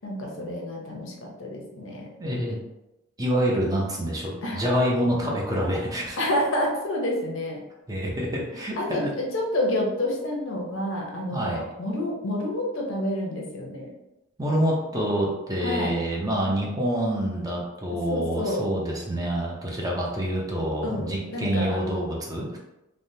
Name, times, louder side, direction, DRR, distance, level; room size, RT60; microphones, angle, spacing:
voice 1, 0.0-2.1 4.4-4.6 6.2-7.6 8.8-13.9 15.6-15.9 18.1-18.6 20.8-21.8, left 1 dB, 75° left, -1 dB, 0.7 m, -29 dB
voice 2, 2.2-2.6 3.2-6.2 7.9-9.1 11.3-11.6 14.4-22.6, equal, 20° right, -2 dB, 0.5 m, -27 dB
3.3 x 2.1 x 2.7 m, 0.95 s
head